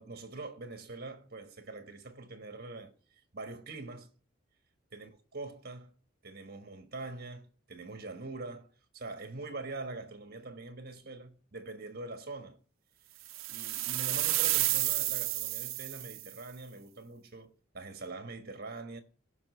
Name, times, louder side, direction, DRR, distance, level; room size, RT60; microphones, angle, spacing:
voice 1, 0.0-2.9 3.3-4.1 4.9-5.9 6.2-12.6 13.5-19.0, right 3 dB, 50° right, 1.4 m, -44 dB
sound 1, 13.3-16.3, right 16 dB, 75° right, 0.5 m, -31 dB
16.5 x 5.8 x 3.2 m
head